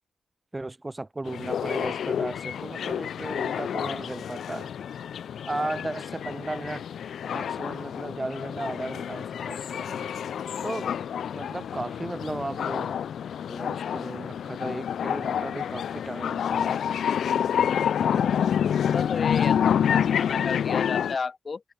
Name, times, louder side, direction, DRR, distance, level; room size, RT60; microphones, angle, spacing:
voice 1, 0.5-4.7 5.5-6.9 7.3-10.1 10.6-10.9 11.3-13.0 13.5-16.8, right 2 dB, 20° right, 1.7 m, -35 dB
sound 1, 1.3-21.2, left 8 dB, 90° left, 0.4 m, -28 dB
voice 2, 18.0-21.6, left 4 dB, 45° left, 2.4 m, -34 dB
cardioid pair, 80°, 0 cm